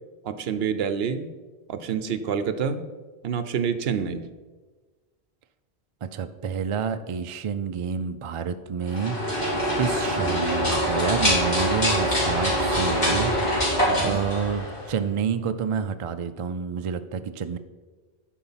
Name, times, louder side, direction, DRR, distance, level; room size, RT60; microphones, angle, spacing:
voice 1, 0.2-1.3 1.7-2.8 3.2-4.3 13.8-14.2, right 7 dB, 70° right, 11 dB, 0.9 m, -27 dB
voice 2, 6.0-17.6, right 6 dB, 50° right, 10 dB, 0.4 m, -29 dB
sound 1, 8.8-15.0, equal, 40° left, 3.1 m, -24 dB
11.0 x 4.6 x 5.6 m, 1.3 s
omnidirectional pair, 1.1 m